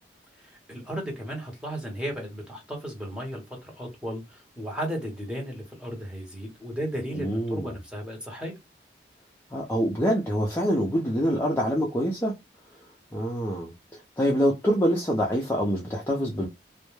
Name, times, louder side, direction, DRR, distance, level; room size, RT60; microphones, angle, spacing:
voice 1, 0.4-8.6, equal, 5° right, 0.8 m, -35 dB
voice 2, 7.1-7.7 9.5-12.3 13.1-16.5, equal, 10° left, 0.4 m, -25 dB
2.2 x 2.0 x 3.0 m
head